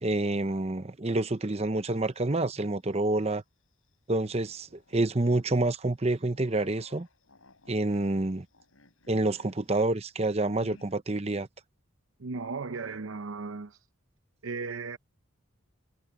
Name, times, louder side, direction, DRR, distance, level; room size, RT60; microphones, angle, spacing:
voice 1, 0.0-3.4 4.1-4.7 4.9-7.1 7.7-8.4 9.1-11.5, right 2 dB, 30° right, 0.8 m, -28 dB
sound 1, 1.1-2.7 3.1-3.2 4.2-11.0, left 2 dB, 90° left, 6.4 m, -59 dB
voice 2, 12.2-13.8 14.4-15.0, right 4 dB, 80° right, 0.7 m, -36 dB
head